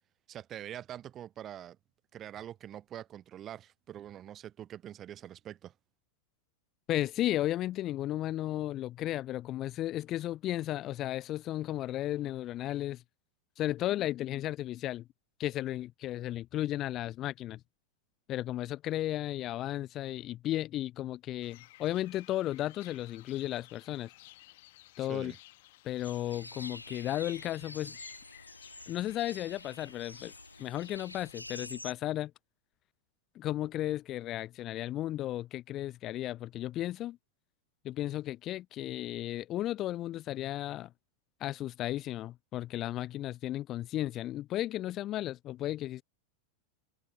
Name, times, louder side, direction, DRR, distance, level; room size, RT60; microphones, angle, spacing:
voice 1, 0.3-1.8 2.1-5.7 25.0-25.4, right 11 dB, 30° right, 0.8 m, -44 dB
voice 2, 6.9-13.0 13.6-15.1 15.4-17.6 18.3-24.1 25.0-25.3 25.8-28.0 28.9-30.3 30.6-32.3 33.4-37.2 37.8-40.9 41.4-46.0, left 14 dB, 35° left, 0.4 m, -34 dB
sound 1, 21.4-31.4, left 19 dB, 50° left, 1.5 m, -56 dB
sound 2, 26.0-31.9, left 1 dB, 85° left, 2.2 m, -47 dB
figure-of-eight pair, 90°, 0 cm